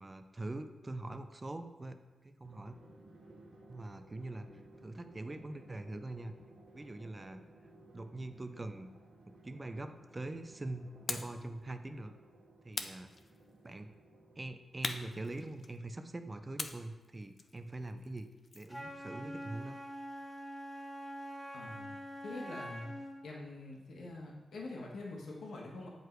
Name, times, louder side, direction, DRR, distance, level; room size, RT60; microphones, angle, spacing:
voice 1, 0.0-2.0 2.2-2.8 3.7-4.5 4.8-6.3 6.7-7.4 7.9-8.9 9.3-12.1 12.6-13.1 13.6-13.9 14.4-19.8, right 2 dB, 20° right, 8 dB, 0.5 m, -43 dB
Drum, 2.4-14.8, right 2 dB, 80° right, 2.4 m, -58 dB
sound 1, 11.1-11.4 12.7-13.7 14.8-15.9 16.6-18.8, left 3 dB, 40° left, 0.5 m, -42 dB
Wind instrument woodwind instrument, 18.7-23.2, equal, 10° left, 1.1 m, -45 dB
voice 2, 21.5-22.0 22.2-22.9 23.2-25.9, left 2 dB, 80° left, -2 dB, 1.5 m, -45 dB
8.2 x 4.8 x 4.6 m, 1.2 s
wide cardioid pair, 110°, 0 cm